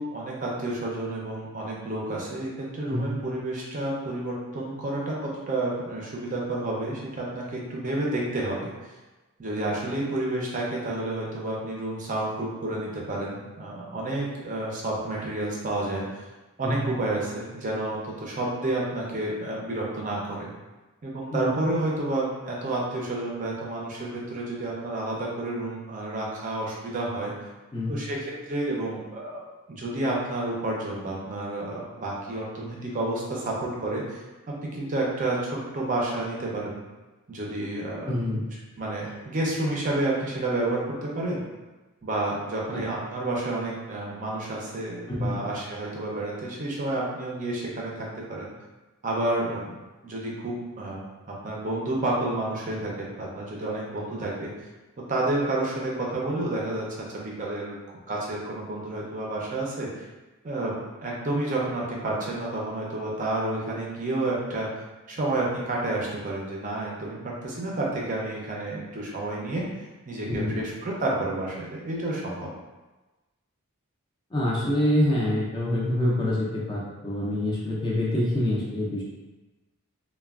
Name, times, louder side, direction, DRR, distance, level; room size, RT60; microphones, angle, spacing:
voice 1, 0.0-8.7 9.4-16.3 16.6-20.5 21.0-27.3 27.9-29.4 29.7-34.2 34.6-36.8 37.3-38.1 38.8-41.4 42.0-48.5 49.0-49.7 50.0-54.5 55.1-57.8 58.1-60.1 60.4-60.7 61.0-64.7 65.1-69.6 70.1-72.5, right 2 dB, 35° right, -3 dB, 0.5 m, -30 dB
voice 2, 2.9-3.2 16.6-16.9 21.3-21.5 27.7-28.0 38.1-38.4 42.7-42.8 45.1-45.4 70.3-70.6 74.3-79.0, left 1 dB, 20° left, -5 dB, 0.4 m, -26 dB
3.2 x 2.2 x 2.3 m, 1.2 s
head